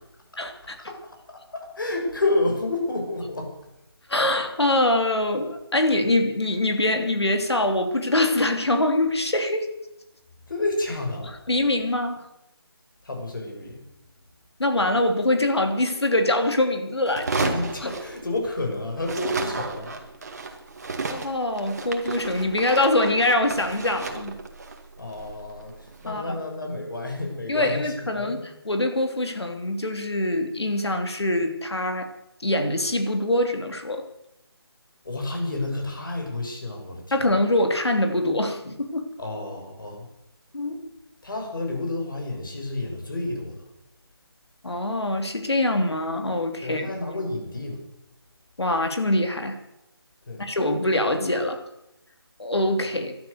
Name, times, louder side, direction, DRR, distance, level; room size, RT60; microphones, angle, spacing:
voice 1, 0.4-0.8 4.1-9.7 11.5-12.2 14.6-17.6 21.1-24.4 26.0-26.4 27.5-32.1 32.4-34.0 37.1-39.1 40.5-40.9 44.6-46.9 48.6-49.6 50.4-51.6 52.4-53.2, left 1 dB, 90° left, 5 dB, 3.2 m, -24 dB
voice 2, 1.3-3.5 10.5-11.4 13.0-13.8 17.4-19.9 25.0-28.4 35.0-37.3 39.2-40.1 41.2-43.6 46.6-47.8 50.3-50.5, left 2 dB, 55° left, 2 dB, 6.2 m, -30 dB
sound 1, 17.1-18.7 19.0-26.2, right 3 dB, 40° right, 2.0 m, -33 dB
17.5 x 12.0 x 6.6 m, 0.87 s
figure-of-eight pair, 170°, 13 cm